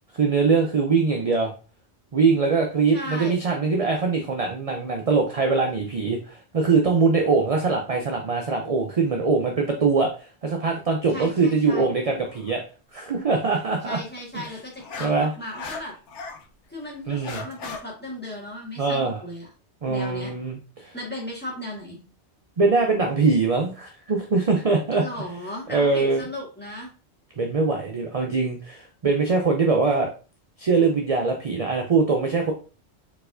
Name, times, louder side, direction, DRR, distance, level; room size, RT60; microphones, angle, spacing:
voice 1, 0.1-1.5 2.1-12.6 12.9-14.0 14.3-14.4 15.0-15.3 17.1-17.4 18.8-19.2 19.8-20.9 22.6-25.0 25.7-26.2 27.4-30.1 30.6-32.5, right 4 dB, 40° right, 2 dB, 0.6 m, -22 dB
voice 2, 2.9-3.4 11.1-11.9 13.8-15.9 16.7-19.5 19.9-20.3 20.9-22.0 25.0-26.9, left 1 dB, 10° left, -4 dB, 1.6 m, -36 dB
sound 1, 12.3-12.6 14.4-16.4 16.9-17.8, left 4 dB, 90° left, 1.1 m, -36 dB
4.5 x 4.2 x 2.5 m, 0.34 s
omnidirectional pair, 1.2 m